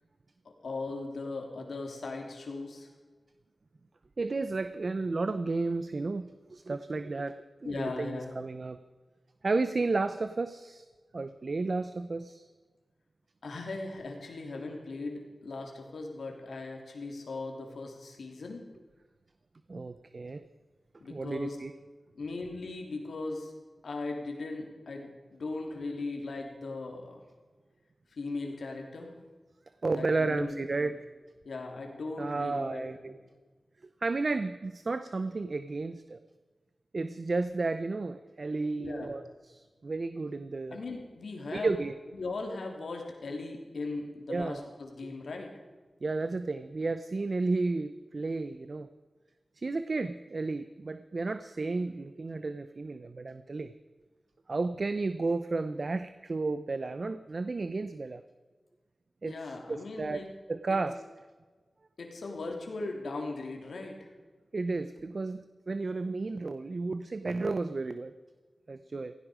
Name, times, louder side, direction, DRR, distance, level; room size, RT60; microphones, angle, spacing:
voice 1, 0.6-2.9 7.6-8.4 13.4-18.6 21.0-21.6 22.1-23.5 23.8-27.2 28.1-29.1 29.9-30.9 31.4-33.1 38.8-39.1 40.7-41.7 42.1-45.5 59.2-60.3 62.0-64.1, left 3 dB, 90° left, 2 dB, 3.1 m, -38 dB
voice 2, 4.2-8.8 9.4-10.9 11.1-12.5 19.7-20.4 21.1-21.7 29.8-31.0 32.2-33.2 34.0-36.2 36.9-40.8 41.5-42.0 44.3-44.6 45.0-45.1 46.0-48.9 49.6-53.7 54.5-58.2 59.2-61.0 64.5-68.1 68.7-69.1, right 3 dB, 55° right, 12 dB, 0.6 m, -32 dB
16.5 x 16.0 x 5.0 m, 1.4 s
wide cardioid pair, 75°, 0 cm